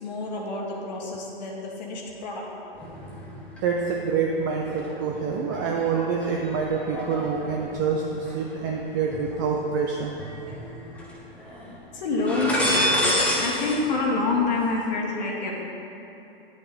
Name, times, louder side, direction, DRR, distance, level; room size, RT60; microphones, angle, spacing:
voice 1, 0.0-2.5 11.9-15.5, left 3 dB, 45° left, -1 dB, 1.5 m, -27 dB
sound 1, 2.7-3.6 4.0-9.6 10.2-11.1 11.4-11.7 12.1-13.8 14.0-14.7, equal, 5° left, 1.2 m, -30 dB
voice 2, 3.6-10.1, right 5 dB, 20° right, 0 dB, 0.4 m, -26 dB
9.7 x 8.3 x 3.8 m, 3.0 s
figure-of-eight pair, 120°, 30 cm